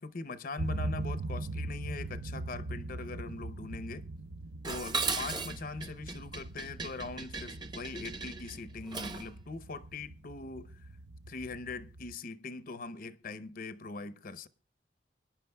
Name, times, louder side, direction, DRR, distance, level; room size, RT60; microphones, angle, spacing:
voice 1, 0.0-4.1 4.6-10.9 11.3-14.5, left 3 dB, 50° left, 0.7 m, -41 dB
sound 1, 0.6-12.1, right 2 dB, 70° right, 0.6 m, -41 dB
Dishes pots and pans, 4.6-9.3, right 4 dB, 25° right, 0.9 m, -37 dB
24.0 x 10.0 x 2.2 m
head